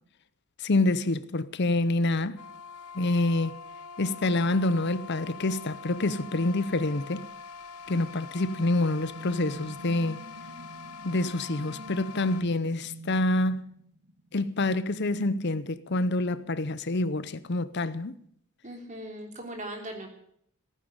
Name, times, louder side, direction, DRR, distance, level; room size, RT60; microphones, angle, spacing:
voice 1, 0.6-2.4 2.9-3.5 4.0-7.3 7.9-10.2 11.0-13.7 14.3-18.2, left 2 dB, 50° left, 0.7 m, -27 dB
sound 1, 2.4-12.4, left 5 dB, 80° left, 0.9 m, -44 dB
sound 2, 7.9-14.4, right 1 dB, 55° right, 1.6 m, -47 dB
voice 2, 18.6-20.1, right 1 dB, 35° right, 3.2 m, -39 dB
15.5 x 9.3 x 9.8 m
head